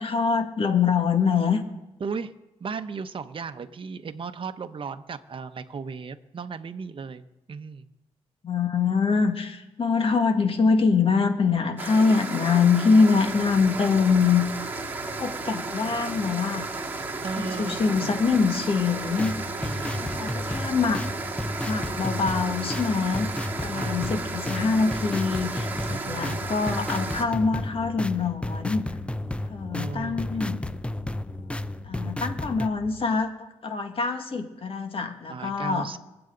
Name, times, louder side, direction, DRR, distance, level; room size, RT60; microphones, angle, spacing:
voice 1, 0.0-1.6 8.4-14.4 15.2-16.7 17.4-19.3 20.2-21.0 21.7-23.3 23.6-28.8 29.5-30.6 31.8-35.9, left 5 dB, 50° left, 5 dB, 2.0 m, -24 dB
voice 2, 2.0-2.3 2.6-7.9 17.2-18.2 19.6-20.3 23.7-24.0 25.9-26.4 29.7-30.3 35.3-36.0, right 5 dB, 45° right, 8 dB, 0.9 m, -36 dB
sound 1, 11.8-27.2, right 3 dB, 15° right, 2.3 m, -33 dB
sound 2, 13.1-33.0, left 5 dB, 90° left, 1.9 m, -47 dB
sound 3, 19.0-32.7, left 1 dB, 10° left, 0.5 m, -33 dB
24.0 x 8.0 x 4.0 m, 0.98 s
supercardioid pair, 60°, 12 cm